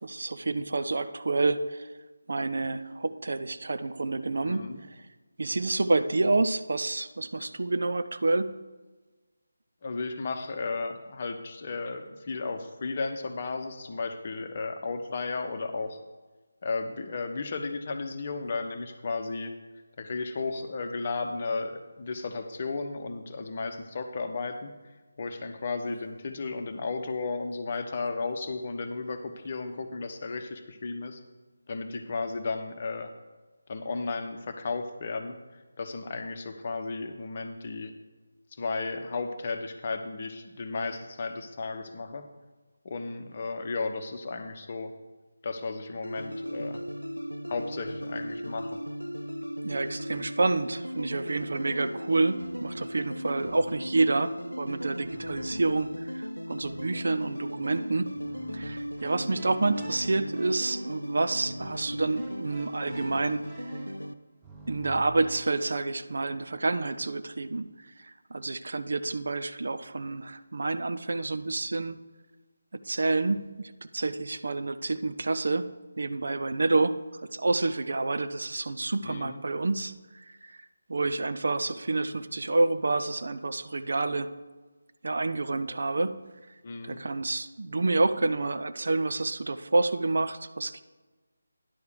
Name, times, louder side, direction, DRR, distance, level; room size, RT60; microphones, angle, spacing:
voice 1, 0.0-1.9 2.3-5.0 5.4-8.5 49.6-54.3 54.6-55.9 56.1-58.1 58.5-63.4 64.7-67.7 68.0-72.0 72.8-75.7 76.0-77.0 77.3-80.6 80.9-84.3 85.0-86.2 86.8-90.8, right 3 dB, 55° right, 11 dB, 0.5 m, -28 dB
voice 2, 4.4-4.8 9.8-16.0 16.6-19.5 20.0-24.7 25.2-31.2 31.7-33.1 33.7-35.4 35.8-37.9 38.6-42.3 42.8-44.9 45.4-46.8 47.5-48.8 79.0-79.4 86.6-87.0, left 3 dB, 35° left, 7 dB, 0.8 m, -34 dB
sound 1, 46.0-64.1, equal, 85° left, 0.5 m, -37 dB
sound 2, 52.4-52.9 53.4-54.0 55.0-56.0 56.6-57.1 58.2-65.7, right 1 dB, 5° right, 0.9 m, -49 dB
10.0 x 4.8 x 6.7 m, 1.2 s
figure-of-eight pair, 155°, 0 cm